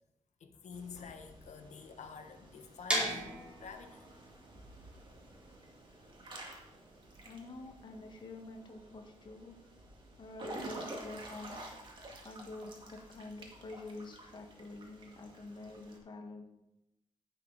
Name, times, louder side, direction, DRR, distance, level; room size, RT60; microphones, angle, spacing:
voice 1, 0.4-4.0, left 5 dB, 65° left, 6 dB, 1.3 m, -49 dB
Water / Splash splatter / Drip, 0.7-16.0, right 1 dB, 40° right, 2.1 m, -50 dB
sound 1, 2.9-8.7, equal, 10° right, 3.6 m, -39 dB
voice 2, 7.2-9.5 10.2-11.6 12.2-16.4, left 2 dB, 35° left, 3 dB, 1.7 m, -47 dB
15.5 x 6.6 x 4.1 m, 0.90 s
wide cardioid pair, 160°, 13 cm